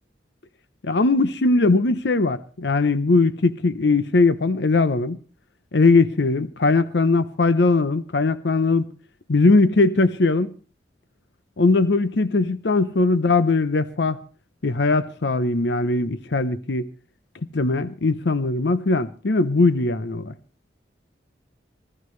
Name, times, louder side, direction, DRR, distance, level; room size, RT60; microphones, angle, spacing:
voice 1, 0.8-5.2 5.7-8.8 9.3-10.5 11.6-14.2 14.6-16.9 17.5-20.3, left 3 dB, 70° left, 0.7 m, -20 dB
24.5 x 14.5 x 3.2 m
head